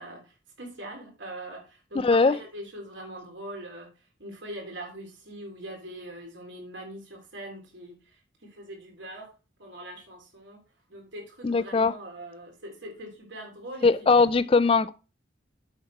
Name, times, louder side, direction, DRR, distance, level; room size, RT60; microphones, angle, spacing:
voice 1, 0.0-3.9 4.2-9.3 9.6-10.6 10.9-13.9, right 1 dB, 70° right, 3.4 m, -42 dB
voice 2, 2.0-2.3 11.4-11.9 13.8-14.9, left 4 dB, 30° left, 0.3 m, -20 dB
8.1 x 6.0 x 4.7 m
head